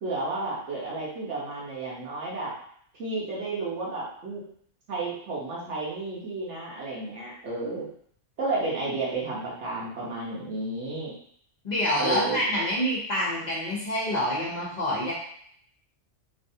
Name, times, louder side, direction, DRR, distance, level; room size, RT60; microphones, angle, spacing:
voice 1, 0.0-2.5 3.0-4.4 4.9-7.8 8.4-11.1 12.0-12.4, right 3 dB, 70° right, -5 dB, 1.3 m, -32 dB
voice 2, 11.6-15.1, equal, 40° left, -6 dB, 0.8 m, -27 dB
3.2 x 2.5 x 2.7 m, 0.64 s
omnidirectional pair, 1.3 m